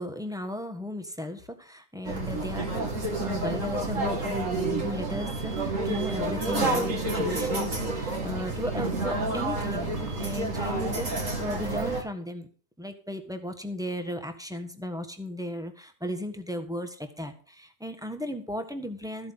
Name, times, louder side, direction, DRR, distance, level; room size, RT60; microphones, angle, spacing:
voice 1, 0.0-12.5 12.8-19.3, left 1 dB, ahead, 6 dB, 1.4 m, -35 dB
sound 1, 2.0-12.0, right 2 dB, 55° right, 2.9 m, -29 dB
14.0 x 8.0 x 5.7 m, 0.41 s
omnidirectional pair, 1.6 m